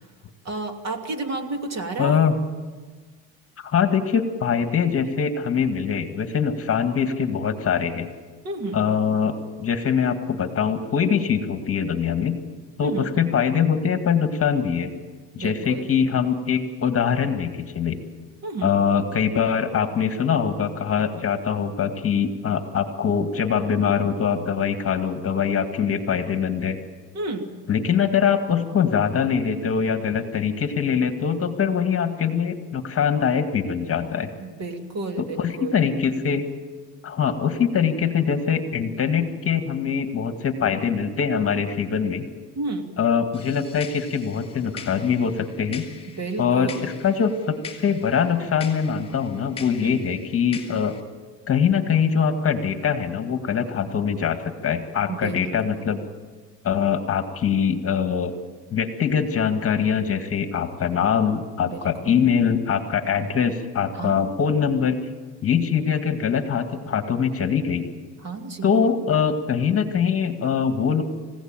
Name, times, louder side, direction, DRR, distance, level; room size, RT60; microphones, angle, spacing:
voice 1, 0.4-2.3 8.4-8.8 12.8-13.1 15.4-15.9 18.4-18.7 27.1-27.5 34.4-35.8 42.5-42.9 46.1-46.9 49.8-50.0 55.1-55.8 61.6-62.2 63.9-64.3 68.2-68.9, right 3 dB, 40° right, 6 dB, 2.8 m, -31 dB
voice 2, 2.0-2.3 3.6-8.1 8.7-9.3 9.6-12.4 12.8-14.9 15.4-18.0 18.6-26.8 27.7-34.3 35.2-36.4 37.0-42.2 43.0-45.9 46.4-51.0 51.5-56.0 56.6-58.3 58.7-65.0 65.4-67.9 68.6-71.0, left 7 dB, 35° left, 7 dB, 2.1 m, -23 dB
sound 1, 43.3-51.0, left 6 dB, 15° left, 4.6 m, -42 dB
28.5 x 16.5 x 9.0 m, 1.5 s
supercardioid pair, 115°, 41 cm